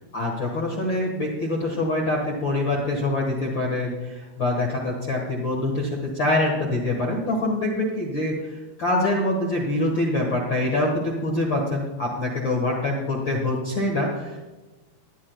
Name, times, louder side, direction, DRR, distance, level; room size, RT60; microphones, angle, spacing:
voice 1, 0.1-14.4, left 2 dB, 80° left, -1 dB, 1.0 m, -25 dB
19.5 x 12.5 x 2.3 m, 1.2 s
omnidirectional pair, 4.9 m